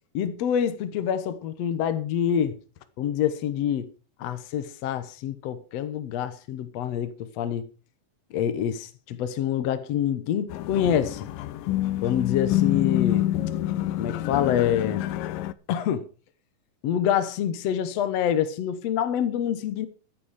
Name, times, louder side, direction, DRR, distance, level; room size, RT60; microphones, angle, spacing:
voice 1, 0.1-2.5 3.0-3.9 4.2-7.6 8.3-11.3 12.0-13.3 14.0-15.1 15.7-16.1 16.8-19.9, left 9 dB, 60° left, 1.9 m, -26 dB
sound 1, 10.5-15.5, left 13 dB, 85° left, 2.4 m, -27 dB
14.5 x 10.0 x 4.9 m
omnidirectional pair, 3.9 m